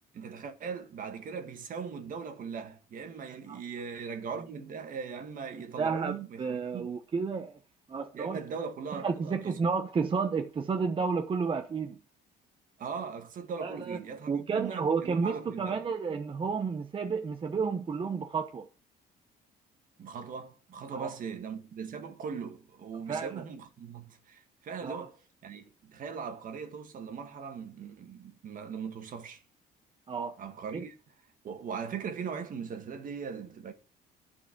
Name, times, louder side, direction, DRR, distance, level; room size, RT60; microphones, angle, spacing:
voice 1, 0.1-6.9 8.1-9.6 12.8-15.8 20.0-25.2 25.4-29.4 30.4-30.9 31.4-33.7, right 6 dB, 55° right, 1.9 m, -39 dB
voice 2, 5.8-7.6 7.9-8.4 8.9-12.0 13.6-14.0 14.3-18.7 20.9-21.1 23.1-23.4 24.8-25.1 30.1-30.4 30.7-30.8, right 5 dB, 30° right, 1.0 m, -31 dB
11.5 x 4.9 x 6.1 m
cardioid pair, 110°, 17 cm